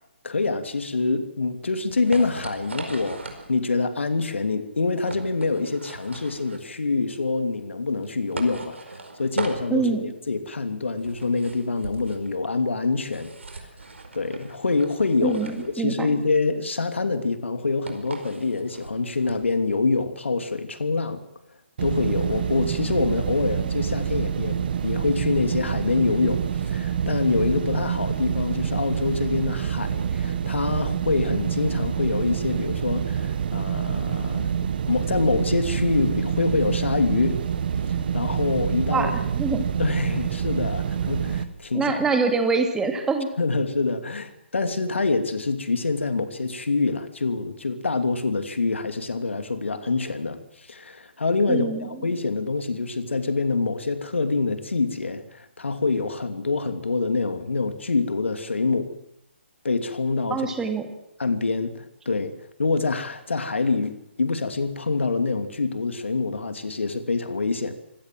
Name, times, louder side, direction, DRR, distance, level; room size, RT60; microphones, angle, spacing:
voice 1, 0.2-8.8 9.2-13.3 14.1-21.2 21.8-24.6 24.8-34.5 34.9-37.4 38.1-39.1 39.8-42.0 43.4-58.9 59.6-60.5 61.2-62.3 62.6-67.7, left 3 dB, 80° left, 9 dB, 2.8 m, -25 dB
sound 1, 1.3-19.6, right 3 dB, 80° right, 4.9 m, -39 dB
voice 2, 9.7-10.1 15.2-16.1 38.9-39.7 41.7-43.3 51.5-51.9 60.3-60.9, right 4 dB, 10° right, 6 dB, 2.4 m, -25 dB
Loud Machinery Ambiance, 21.8-41.4, right 8 dB, 50° right, 1.7 m, -27 dB
25.5 x 17.5 x 7.7 m, 0.79 s
figure-of-eight pair, 145°, 6 cm